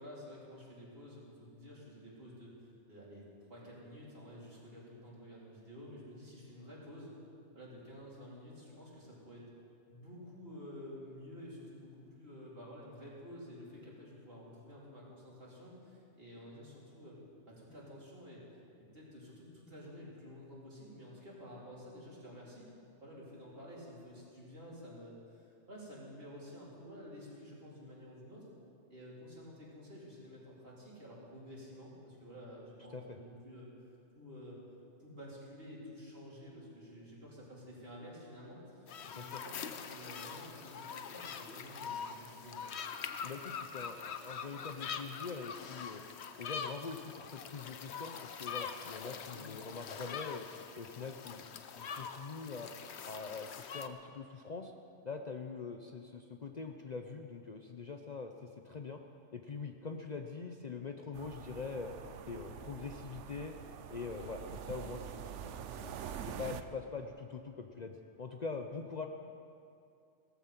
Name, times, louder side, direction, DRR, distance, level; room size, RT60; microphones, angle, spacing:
voice 1, 0.0-7.1 7.5-9.5 9.9-17.2 17.5-18.6 18.9-22.7 23.0-28.5 28.9-33.7 34.1-34.6 35.0-42.7 49.3-49.5 50.0-50.1 62.4-62.5 64.2-64.3, equal, 55° right, -6 dB, 4.0 m, -51 dB
sound 1, 38.9-53.9, left 6 dB, 70° left, 1.0 m, -44 dB
voice 2, 43.2-46.0 46.4-50.4 50.8-52.7 53.0-54.7 55.0-59.0 59.3-61.9 62.3-63.5 63.9-69.1, left 4 dB, 45° left, 4 dB, 0.7 m, -44 dB
sound 2, 61.1-66.6, right 8 dB, 80° right, 1.0 m, -45 dB
16.5 x 14.5 x 5.9 m, 2.5 s
omnidirectional pair, 1.2 m